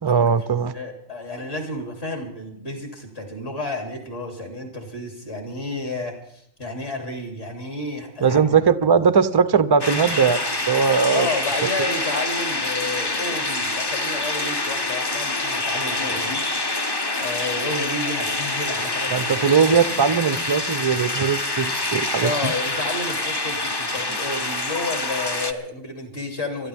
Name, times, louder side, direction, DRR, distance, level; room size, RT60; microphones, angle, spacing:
voice 1, 0.0-0.7 8.2-11.3 19.1-22.5, right 6 dB, 35° right, 14 dB, 0.3 m, -19 dB
voice 2, 0.7-8.4 11.1-16.4 17.2-19.5 22.2-26.7, left 2 dB, 50° left, 2 dB, 3.2 m, -31 dB
sound 1, 9.8-25.5, left 2 dB, 20° left, 0.8 m, -26 dB
27.0 x 13.0 x 3.5 m, 0.69 s
omnidirectional pair, 1.4 m